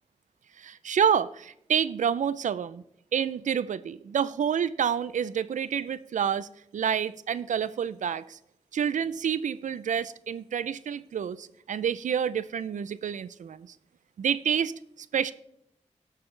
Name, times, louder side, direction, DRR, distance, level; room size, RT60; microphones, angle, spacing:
voice 1, 0.6-2.8 3.1-8.4 8.7-13.7 14.2-15.3, right 8 dB, 90° right, 16 dB, 0.5 m, -28 dB
17.0 x 6.6 x 3.2 m, 0.76 s
wide cardioid pair, 140°, 12 cm